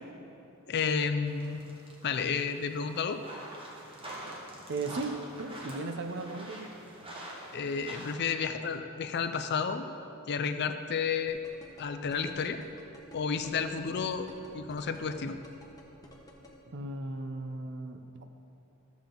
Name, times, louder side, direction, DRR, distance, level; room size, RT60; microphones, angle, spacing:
voice 1, 0.7-1.6 2.0-3.2 7.5-9.8 10.3-11.4 11.8-12.6 13.1-15.4, left 5 dB, 50° left, 9 dB, 0.5 m, -31 dB
sound 1, 1.3-8.2, right 1 dB, 25° right, 1.4 m, -45 dB
voice 2, 4.7-6.7 16.7-18.2, right 3 dB, 55° right, 6 dB, 0.6 m, -36 dB
sound 2, 11.3-16.5, equal, 15° left, 1.1 m, -50 dB
12.5 x 7.2 x 3.8 m, 2.9 s
head